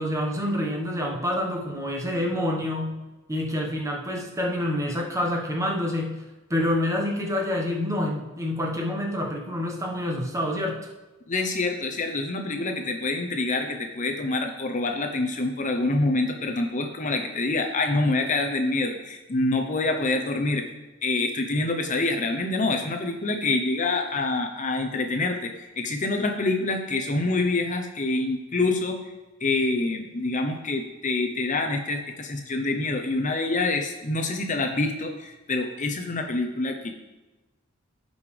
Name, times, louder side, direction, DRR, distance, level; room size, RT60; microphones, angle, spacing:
voice 1, 0.0-3.0 3.3-6.2 6.5-10.9, left 1 dB, 15° right, 0 dB, 1.3 m, -27 dB
voice 2, 11.3-20.7 21.0-29.0 29.4-36.9, left 2 dB, 40° left, 4 dB, 0.8 m, -26 dB
16.0 x 5.4 x 3.4 m, 1.1 s
head